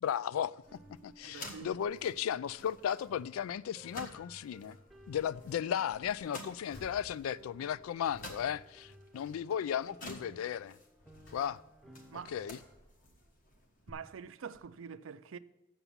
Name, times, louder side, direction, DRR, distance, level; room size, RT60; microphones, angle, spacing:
voice 1, 0.0-0.5 1.0-4.8 5.1-10.8 11.3-11.6 12.3-12.6, left 9 dB, 85° left, 0.3 m, -35 dB
sound 1, 0.5-12.8, equal, ahead, 0.8 m, -59 dB
sound 2, 0.6-13.9, left 1 dB, 40° left, 1.3 m, -53 dB
voice 2, 1.2-1.8 12.1-12.3 13.9-15.4, right 6 dB, 70° right, 0.4 m, -45 dB
sound 3, 5.0-5.4 5.9-9.5 9.9-10.2 10.7-12.0 12.5-13.5 14.1-14.3 14.5-14.6, left 1 dB, 65° left, 4.2 m, -59 dB
7.2 x 7.0 x 7.0 m
head